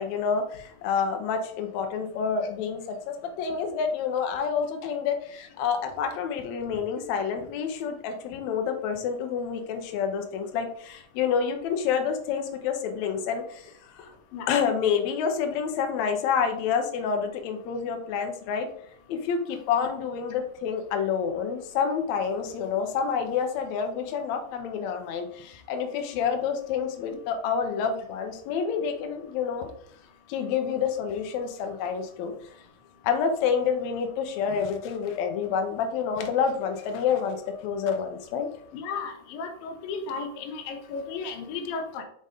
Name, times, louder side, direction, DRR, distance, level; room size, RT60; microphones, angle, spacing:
voice 1, 0.0-14.1 14.5-18.7 19.1-29.7 30.3-32.3 33.0-38.5, left 6 dB, 70° left, 5 dB, 1.8 m, -28 dB
voice 2, 38.7-42.0, left 4 dB, 90° left, 5 dB, 2.7 m, -34 dB
5.4 x 4.0 x 4.9 m, 0.63 s
omnidirectional pair, 4.0 m